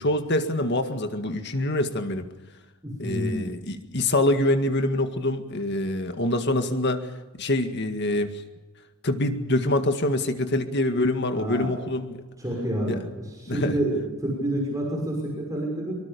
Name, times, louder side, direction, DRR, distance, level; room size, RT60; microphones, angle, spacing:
voice 1, 0.0-2.3 3.0-7.1 7.4-8.3 9.0-12.2 12.9-13.0 13.5-13.8, left 1 dB, 50° left, 7 dB, 1.9 m, -25 dB
voice 2, 2.8-3.5 11.3-11.8 12.4-15.9, right 1 dB, 15° right, -1 dB, 6.3 m, -28 dB
24.5 x 24.0 x 6.9 m, 1.2 s
head